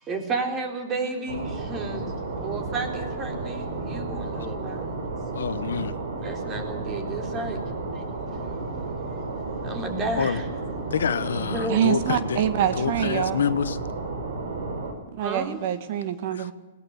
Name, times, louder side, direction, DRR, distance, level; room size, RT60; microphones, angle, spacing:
voice 1, 0.0-5.0 6.2-7.6 7.9-8.0 8.3-8.4 9.6-10.5 11.3-11.8 15.2-15.6, right 3 dB, 25° right, 3.8 m, -32 dB
sound 1, 1.3-14.9, right 3 dB, 65° right, 5.6 m, -32 dB
voice 2, 5.3-5.9 10.2-10.4 10.9-12.4 12.8-13.8 16.3-16.5, left 7 dB, 80° left, 1.1 m, -27 dB
voice 3, 11.7-13.4 15.1-16.5, right 10 dB, 50° right, 1.6 m, -25 dB
20.5 x 16.5 x 8.4 m
hypercardioid pair, 135°, 0 cm